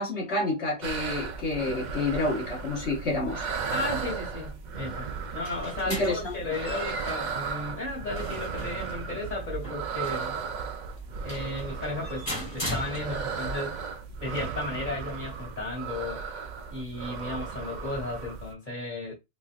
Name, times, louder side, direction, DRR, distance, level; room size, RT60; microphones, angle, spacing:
voice 1, 0.0-3.5 5.8-6.3, left 2 dB, 70° left, 1.8 m, -29 dB
sound 1, 0.8-18.5, right 5 dB, 55° right, 0.5 m, -36 dB
voice 2, 3.6-10.4 11.2-13.9 14.2-16.2 16.7-19.1, left 2 dB, 45° left, 2.3 m, -34 dB
sound 2, 5.1-13.5, right 1 dB, 20° left, 1.7 m, -39 dB
4.0 x 2.6 x 2.4 m
omnidirectional pair, 1.2 m